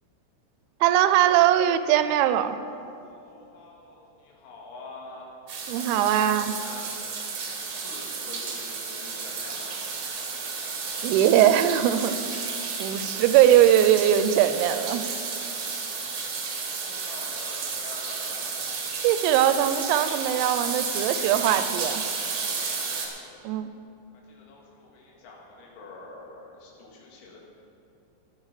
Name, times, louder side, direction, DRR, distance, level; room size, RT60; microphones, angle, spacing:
voice 1, 0.8-2.6 5.7-6.6 11.0-12.2 12.8-15.1 19.0-22.0 23.4-23.7, right 11 dB, 90° right, 11 dB, 3.3 m, -21 dB
voice 2, 3.0-5.4 5.7-6.2 6.6-6.9 7.6-9.9 12.6-12.7 15.0-16.3 16.8-18.4 22.3-22.8 24.3-27.4, left 3 dB, 90° left, -2 dB, 4.7 m, -47 dB
sound 1, 5.5-23.1, right 5 dB, 70° right, 1.8 m, -32 dB
20.5 x 6.8 x 4.9 m, 2.7 s
omnidirectional pair, 6.0 m